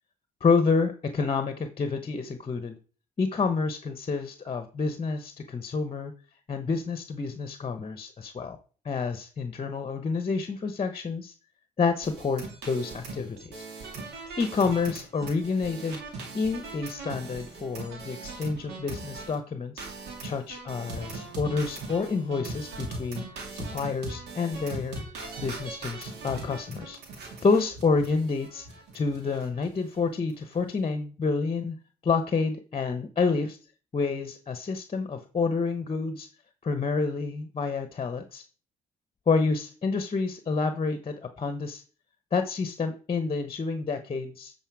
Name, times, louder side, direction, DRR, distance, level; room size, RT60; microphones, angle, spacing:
voice 1, 0.4-2.8 3.2-6.1 6.5-8.6 8.8-11.3 11.8-13.6 14.3-16.0 16.3-19.9 20.2-23.3 23.5-25.0 25.4-27.0 27.4-28.7 28.9-31.8 32.0-33.6 33.9-36.3 36.6-38.4 39.3-41.8 42.3-44.5, left 4 dB, 35° left, 8 dB, 1.0 m, -28 dB
sound 1, 12.0-19.3 19.8-29.7 29.9-30.0 30.3-30.6, right 3 dB, 80° right, 2.5 m, -40 dB
9.0 x 4.3 x 4.7 m, 0.39 s
supercardioid pair, 65°, 17 cm